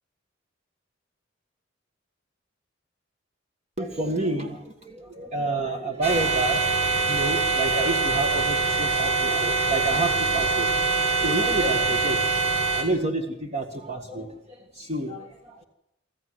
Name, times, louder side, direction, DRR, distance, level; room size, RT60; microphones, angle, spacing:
voice 1, 3.8-6.6 7.1-10.7 11.2-12.2 12.7-14.3 14.8-15.6, right 2 dB, 35° right, 3 dB, 1.8 m, -29 dB
sound 1, 6.0-12.8, right 4 dB, 80° right, 5.6 m, -24 dB
25.5 x 14.5 x 8.0 m, 0.82 s
head